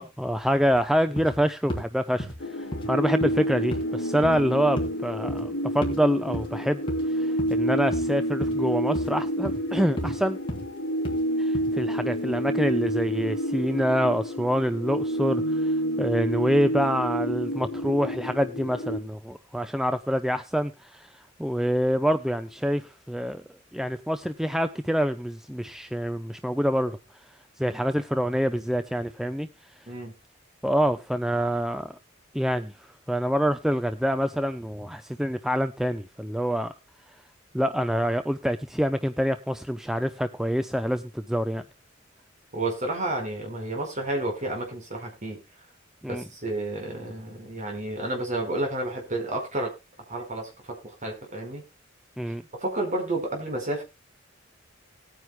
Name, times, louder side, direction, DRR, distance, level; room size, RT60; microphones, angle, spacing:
voice 1, 0.0-2.3 2.6-6.8 7.1-10.4 11.4-23.4 23.7-27.0 27.6-29.5 30.6-32.0 32.3-32.7 33.1-36.7 37.5-41.6 46.0-46.2 52.2-52.4, equal, ahead, 9 dB, 0.6 m, -26 dB
sound 1, 0.7-0.8 1.2-1.4 1.7-1.9 2.2-2.4 2.7-2.9 3.2-3.4 3.7-3.9 4.2-4.4 4.8-4.9 5.3-5.5 5.8-6.0 6.3-6.5 6.9-7.0 7.4-7.6 7.9-8.1 8.4-8.6 8.9-9.2 9.4-9.6 10.0-10.2 10.5-10.7 11.0-11.2 11.5-11.7, equal, 25° left, 3.0 m, -33 dB
sound 2, 2.4-19.0, equal, 65° left, 1.8 m, -29 dB
voice 2, 42.5-45.4 46.0-49.7 50.1-51.6 52.3-53.8, right 2 dB, 40° right, 2 dB, 4.8 m, -31 dB
19.5 x 9.4 x 2.2 m, 0.25 s
head